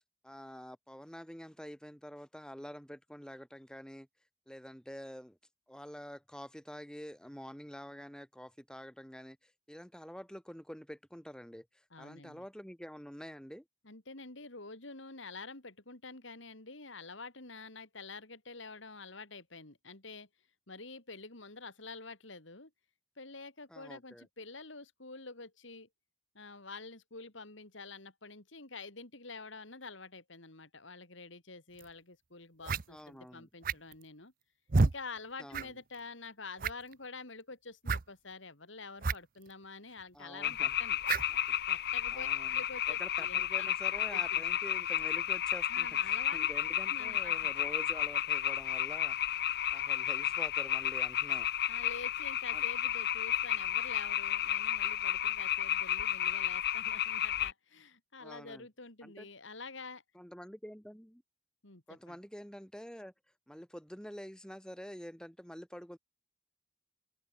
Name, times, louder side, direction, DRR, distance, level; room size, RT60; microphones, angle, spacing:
voice 1, 0.2-4.1 4.5-5.4 5.7-13.6 23.7-24.3 32.9-33.5 35.4-35.7 40.1-40.7 41.3-41.6 42.1-42.6 42.9-49.2 49.7-51.5 52.5-52.6 58.2-58.7 59.0-59.3 60.1-61.2 61.9-63.1 63.5-66.0, equal, 5° left, 2.9 m, -48 dB
voice 2, 11.9-12.4 13.8-20.3 20.7-22.7 23.2-25.9 26.3-34.3 34.8-41.0 41.7-42.3 42.5-43.7 44.1-44.4 45.7-46.5 46.9-47.5 51.7-60.0 61.6-62.2, left 3 dB, 70° left, 3.3 m, -48 dB
sound 1, 31.8-31.9 32.6-32.8 33.6-34.0 34.7-34.9 35.5-35.7 35.9-36.0 36.6-36.9 37.8-38.0 39.0-39.1 39.4-39.5 41.0-41.3, right 3 dB, 45° right, 0.6 m, -29 dB
sound 2, 40.4-57.5, left 11 dB, 50° left, 0.9 m, -32 dB
open air
head